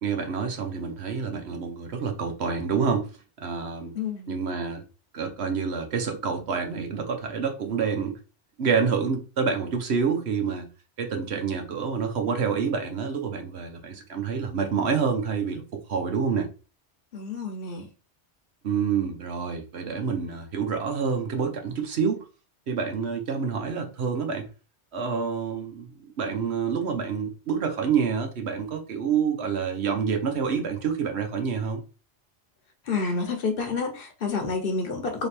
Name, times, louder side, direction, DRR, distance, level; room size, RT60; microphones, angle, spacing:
voice 1, 0.0-3.1 3.4-3.9 4.3-4.8 5.1-8.2 8.6-10.7 11.0-15.6 15.9-16.5 18.6-22.2 22.7-24.5 24.9-25.9 26.2-31.8, right 6 dB, 65° right, 1.2 m, -27 dB
voice 2, 3.9-4.4 17.1-17.9 32.8-35.3, left 4 dB, 55° left, 1.2 m, -29 dB
3.4 x 3.0 x 4.4 m
omnidirectional pair, 1.2 m